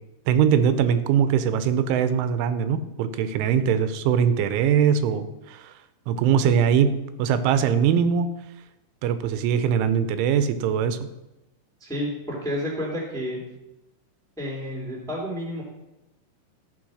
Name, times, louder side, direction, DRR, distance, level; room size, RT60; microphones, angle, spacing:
voice 1, 0.3-5.7 6.1-8.3 9.0-11.0, right 8 dB, 85° right, 12 dB, 3.1 m, -22 dB
voice 2, 11.8-13.4 14.4-15.6, equal, ahead, -3 dB, 1.5 m, -30 dB
13.5 x 5.8 x 6.2 m, 0.98 s
omnidirectional pair, 5.5 m